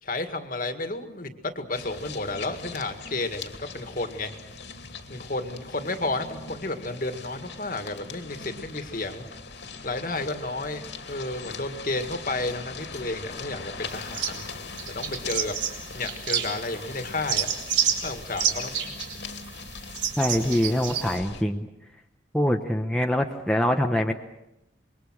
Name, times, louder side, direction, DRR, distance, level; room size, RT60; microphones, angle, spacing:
voice 1, 0.0-4.5 5.1-9.3 9.8-14.4 14.9-15.5 15.9-17.5 18.0-18.7, left 2 dB, 45° left, 7 dB, 2.0 m, -32 dB
sound 1, 1.7-21.4, left 4 dB, 70° left, 2.5 m, -41 dB
sound 2, 13.9-14.5 14.8-16.8 17.0-21.2, right 8 dB, 80° right, 3.8 m, -29 dB
voice 2, 20.2-21.7 22.3-24.1, left 1 dB, 5° left, 3 dB, 0.9 m, -24 dB
27.0 x 22.5 x 6.4 m, 0.86 s
head